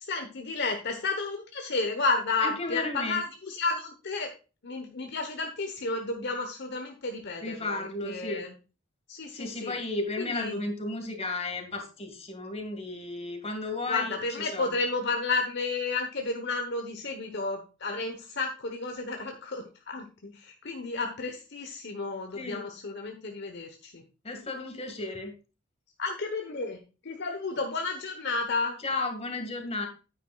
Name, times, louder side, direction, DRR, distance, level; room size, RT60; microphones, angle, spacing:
voice 1, 0.0-4.3 4.6-8.5 9.1-9.7 10.2-10.6 13.9-24.0 26.0-28.8, left 3 dB, 60° left, 4 dB, 1.1 m, -32 dB
voice 2, 2.4-3.2 7.4-8.4 9.3-14.8 22.3-22.7 24.2-25.3 28.8-29.9, left 2 dB, 30° left, 5 dB, 2.0 m, -34 dB
9.6 x 9.4 x 2.4 m, 0.32 s
head